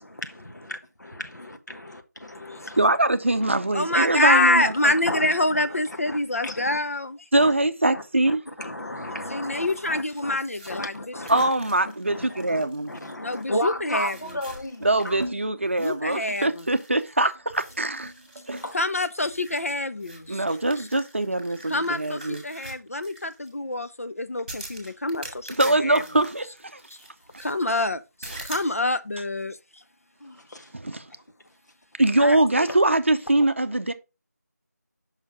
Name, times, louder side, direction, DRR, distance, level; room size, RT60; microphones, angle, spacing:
voice 1, 0.1-3.0 4.8-5.6 6.1-6.8 7.4-7.5 7.9-10.4 10.7-11.5 12.1-15.2 18.6-18.7 30.2-30.7, left 1 dB, 85° left, 1.3 m, -34 dB
voice 2, 2.8-4.9 7.3-8.4 11.3-12.9 14.8-18.1 18.5-18.6 20.3-22.4 25.6-26.8 30.7-31.0 32.0-33.9, right 2 dB, 45° right, 0.6 m, -23 dB
voice 3, 3.7-7.2 9.3-11.1 13.2-14.4 15.8-16.6 18.7-20.4 20.8-20.9 21.7-26.0 27.4-29.6 32.2-32.7, left 2 dB, 55° left, 0.5 m, -26 dB
sound 1, 9.5-13.7 14.0-15.3 15.7-17.2 17.5-23.5 24.5-27.6 28.2-28.7, right 1 dB, 25° right, 1.7 m, -45 dB
sound 2, 10.1-18.7, right 1 dB, 5° right, 0.8 m, -44 dB
5.8 x 5.6 x 3.6 m
figure-of-eight pair, 175°, 9 cm